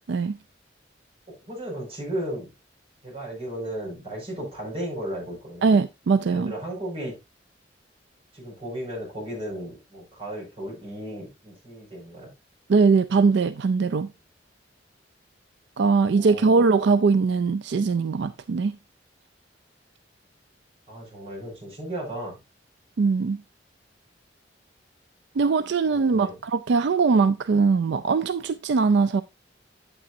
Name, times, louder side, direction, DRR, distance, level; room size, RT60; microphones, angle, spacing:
voice 1, 0.1-0.4 5.6-6.5 12.7-14.1 15.8-18.8 23.0-23.4 25.4-29.2, right 4 dB, 65° right, 0.4 m, -21 dB
voice 2, 1.5-2.5 3.0-5.7 6.3-7.1 8.3-12.3 15.9-16.6 20.9-22.4 25.9-26.4, right 1 dB, 30° right, 5.5 m, -35 dB
8.8 x 8.6 x 2.6 m
head